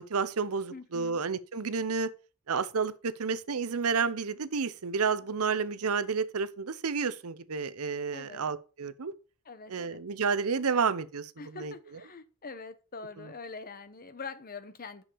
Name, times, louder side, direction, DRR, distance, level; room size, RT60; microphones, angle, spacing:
voice 1, 0.0-2.1 2.5-9.1 9.7-11.7 13.2-13.3, right 5 dB, 70° right, 0.7 m, -30 dB
voice 2, 0.7-1.2 8.1-8.4 9.4-10.0 11.4-15.0, left 4 dB, 40° left, 0.9 m, -44 dB
6.4 x 6.1 x 6.8 m
head